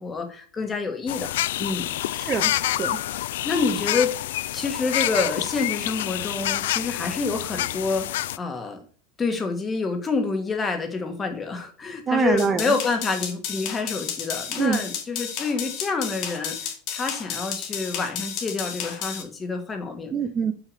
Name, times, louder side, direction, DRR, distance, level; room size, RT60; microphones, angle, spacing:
voice 1, 0.0-1.3 1.6-1.9 3.4-4.1 4.5-8.8 9.2-20.1, left 4 dB, 15° left, 5 dB, 1.4 m, -27 dB
sound 1, 1.1-8.4, left 14 dB, 85° left, 0.4 m, -27 dB
voice 2, 2.1-3.0 12.1-12.7 14.6-14.8 20.1-20.5, right 6 dB, 20° right, 9 dB, 0.5 m, -25 dB
sound 2, 12.4-19.2, left 8 dB, 45° left, 1.8 m, -32 dB
6.1 x 5.6 x 6.6 m, 0.43 s
supercardioid pair, 165°, 0 cm